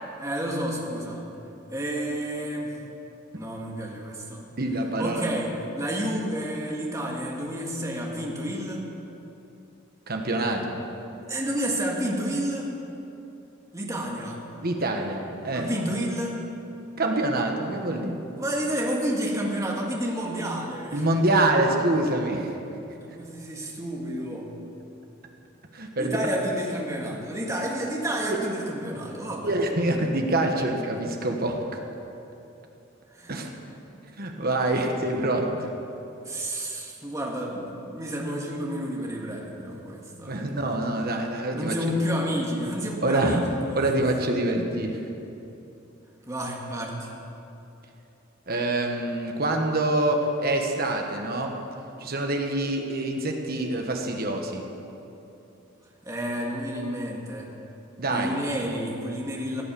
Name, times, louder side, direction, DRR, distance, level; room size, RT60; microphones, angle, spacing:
voice 1, 0.2-1.2 1.7-2.8 3.3-4.4 5.0-8.8 11.3-12.7 13.7-14.4 15.5-16.4 18.4-21.0 23.0-24.5 26.0-29.5 33.1-33.4 36.3-40.4 41.6-44.0 46.3-47.1 56.0-57.5 58.1-59.6, equal, 15° right, -2 dB, 1.8 m, -30 dB
voice 2, 4.6-5.4 10.1-10.8 14.6-15.7 17.0-18.2 20.9-22.5 25.7-26.2 28.3-28.4 29.4-31.6 33.3-33.5 34.2-35.7 40.2-41.7 43.0-43.4 43.7-45.0 48.5-51.5 52.0-54.6 58.0-58.4, right 1 dB, 50° right, 3 dB, 1.5 m, -25 dB
16.0 x 8.7 x 6.9 m, 2.8 s
head